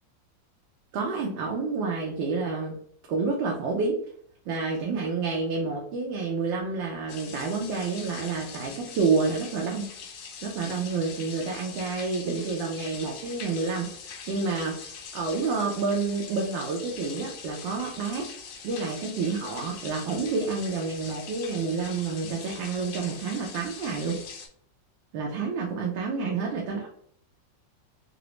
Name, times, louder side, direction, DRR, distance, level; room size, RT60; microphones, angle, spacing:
voice 1, 0.9-2.7 3.1-4.0 4.5-9.9 10.4-18.3 18.6-24.2 25.1-26.9, right 4 dB, 80° right, 0 dB, 1.3 m, -29 dB
sound 1, 7.1-24.5, left 6 dB, 75° left, 1.2 m, -42 dB
3.9 x 2.0 x 3.0 m, 0.63 s
omnidirectional pair, 2.0 m